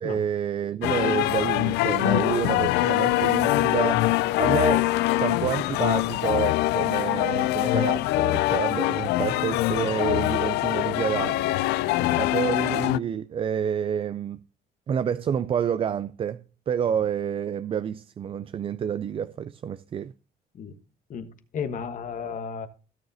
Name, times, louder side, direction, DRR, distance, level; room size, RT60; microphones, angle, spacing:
voice 1, 0.0-4.1 4.4-4.9 5.2-11.5 12.2-14.4 14.9-20.1, right 8 dB, 35° right, 0.4 m, -28 dB
sound 1, 0.8-13.0, left 16 dB, 85° left, 0.4 m, -23 dB
voice 2, 11.6-12.2 20.5-20.7 21.1-22.7, left 6 dB, 50° left, 1.2 m, -34 dB
17.0 x 6.7 x 2.7 m
cardioid pair, 110°, 17 cm